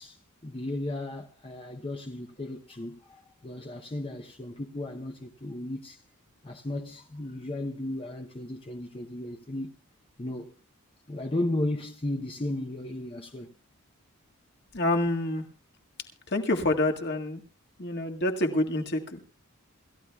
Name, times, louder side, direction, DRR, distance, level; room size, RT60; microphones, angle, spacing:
voice 1, 0.0-6.0 6.4-9.7 10.2-10.6 11.1-13.5, left 1 dB, 25° left, 0.8 m, -35 dB
voice 2, 14.7-15.4 16.3-17.4 17.8-19.3, left 1 dB, 50° left, 1.8 m, -27 dB
27.5 x 14.5 x 2.3 m
head